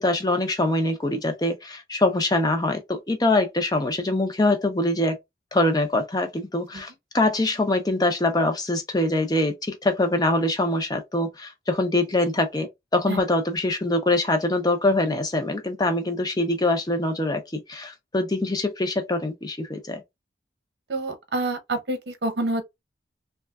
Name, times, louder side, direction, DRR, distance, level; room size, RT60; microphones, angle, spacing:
voice 1, 0.0-5.2 5.5-20.0, left 2 dB, 20° left, 0.6 m, -24 dB
voice 2, 20.9-22.6, right 2 dB, 70° right, 0.8 m, -27 dB
3.2 x 2.3 x 2.3 m
head